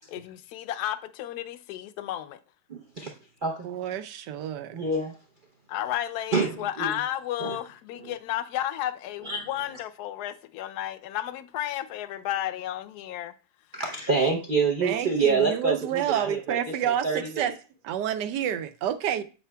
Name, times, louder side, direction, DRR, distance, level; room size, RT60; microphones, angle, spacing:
voice 1, 0.1-2.4 5.7-13.3, left 12 dB, 70° left, 1.0 m, -33 dB
voice 2, 2.7-3.1 3.4-3.7 4.7-5.2 6.3-6.9 7.4-7.6 8.0-8.2 9.2-9.4 13.7-17.5, right 4 dB, 55° right, 0.5 m, -27 dB
voice 3, 3.6-4.8 14.8-17.5 17.8-19.2, right 10 dB, 80° right, 1.2 m, -29 dB
8.3 x 5.6 x 2.2 m
omnidirectional pair, 1.9 m